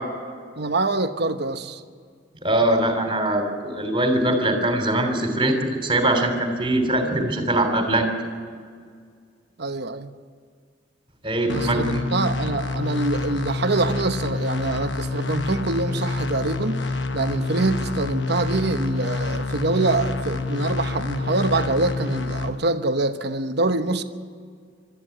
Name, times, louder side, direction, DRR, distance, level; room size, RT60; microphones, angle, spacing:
voice 1, 0.6-1.8 9.6-10.1 11.5-16.8 17.1-24.0, right 2 dB, 60° right, 1.0 m, -25 dB
voice 2, 2.4-8.1 11.2-12.0, right 1 dB, 25° right, 3.0 m, -22 dB
sound 1, 11.5-22.5, left 3 dB, 70° left, 1.1 m, -27 dB
22.5 x 13.0 x 9.2 m
head